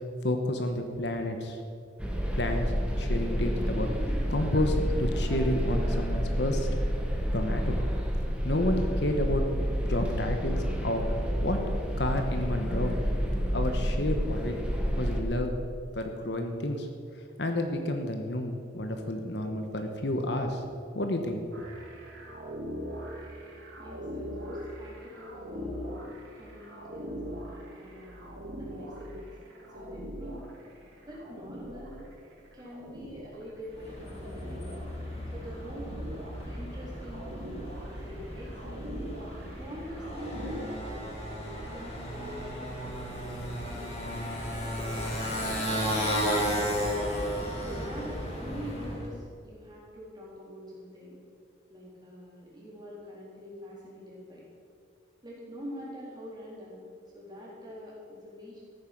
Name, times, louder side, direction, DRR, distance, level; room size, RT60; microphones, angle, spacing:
voice 1, 0.2-1.6 2.4-2.7 3.0-6.7 7.3-7.8 8.4-9.4 9.8-11.1 11.4-11.6 12.0-13.0 13.5-14.6 15.0-15.5 15.9-16.9 17.4-20.6 20.9-21.7, left 1 dB, 60° left, 5 dB, 1.3 m, -30 dB
sound 1, 2.0-15.2, equal, 5° right, 1.5 m, -29 dB
sound 2, 21.5-40.7, equal, 75° right, 3.1 m, -42 dB
voice 2, 23.8-26.0 26.3-29.3 29.7-30.5 31.1-32.1 32.5-34.9 35.3-35.9 36.5-37.6 38.0-38.9 39.6-44.1 44.6-47.1 47.6-51.2 51.7-54.4 55.2-56.8 57.1-58.6, equal, 20° right, -5 dB, 3.8 m, -45 dB
Motorcycle, 33.7-49.1, equal, 30° left, 3.3 m, -34 dB
14.5 x 9.4 x 6.1 m, 2.2 s
head